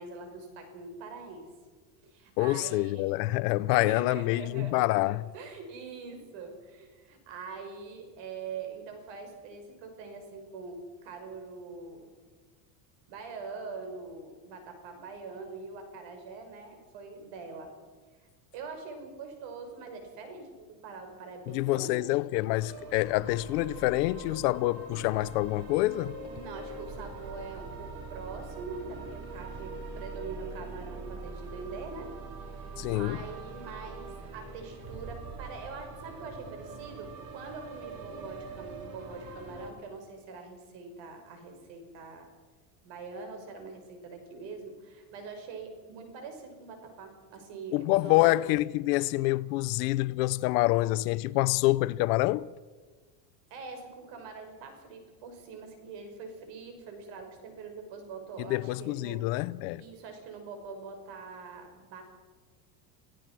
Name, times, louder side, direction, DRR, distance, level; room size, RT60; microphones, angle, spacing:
voice 1, 0.0-1.5 2.0-3.0 3.7-12.1 13.1-17.7 18.2-18.3 18.5-22.2 26.3-32.1 32.4-42.3 42.8-48.4 53.5-59.2 59.8-62.0, right 4 dB, 60° right, 5.9 m, -43 dB
voice 2, 2.4-5.2 21.5-26.2 32.8-33.2 47.7-52.5 58.4-59.8, left 19 dB, 70° left, 0.8 m, -27 dB
sound 1, 22.6-39.7, right 3 dB, 45° right, 3.6 m, -43 dB
27.0 x 16.0 x 6.2 m
supercardioid pair, 130°, 49 cm